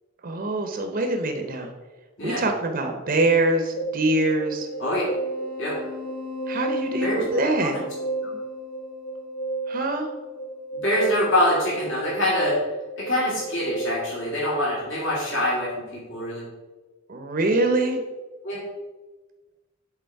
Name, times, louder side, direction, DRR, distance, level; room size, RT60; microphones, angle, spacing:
voice 1, 0.2-1.7 2.2-4.7 6.5-7.8 9.7-10.1 17.1-18.0, right 2 dB, 45° right, 4 dB, 0.7 m, -24 dB
sound 1, 3.8-13.9, right 1 dB, 45° left, 0.9 m, -32 dB
voice 2, 10.8-12.5 13.1-16.4 18.4-18.6, left 1 dB, 65° left, -6 dB, 2.4 m, -25 dB
7.8 x 4.1 x 4.6 m, 1.2 s
head